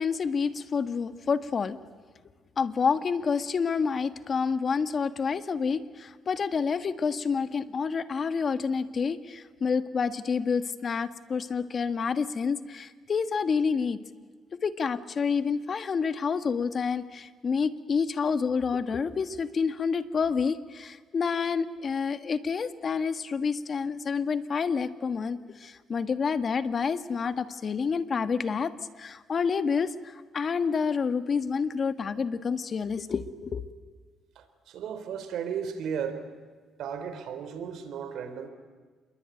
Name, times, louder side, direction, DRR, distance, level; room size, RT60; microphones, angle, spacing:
voice 1, 0.0-1.8 2.6-14.0 14.6-28.7 29.0-33.6, left 5 dB, 45° left, 11 dB, 1.5 m, -28 dB
voice 2, 34.3-36.3 36.8-38.5, right 7 dB, 80° right, 9 dB, 3.4 m, -35 dB
27.5 x 22.0 x 9.2 m, 1.5 s
cardioid pair, 90°, 0 cm